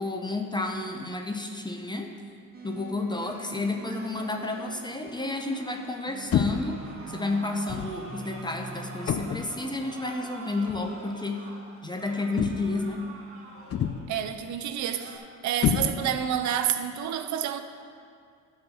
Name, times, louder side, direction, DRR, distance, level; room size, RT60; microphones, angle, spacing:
voice 1, 0.0-2.2 2.6-11.5 11.8-13.1, left 2 dB, 15° left, 3 dB, 0.8 m, -31 dB
sound 1, 2.5-10.7, right 4 dB, 30° right, 1.3 m, -45 dB
sound 2, 3.2-5.9 6.5-14.3 14.7-15.2, right 2 dB, 45° right, 1.8 m, -47 dB
sound 3, 6.3-6.8 7.7-8.0 9.1-9.6 10.7-10.9 12.4-12.9 13.7-14.2 15.6-16.3, left 8 dB, 50° left, 0.6 m, -28 dB
voice 2, 14.1-17.6, right 9 dB, 70° right, 9 dB, 0.7 m, -29 dB
11.5 x 4.5 x 7.0 m, 2.2 s
cardioid pair, 90°, 30 cm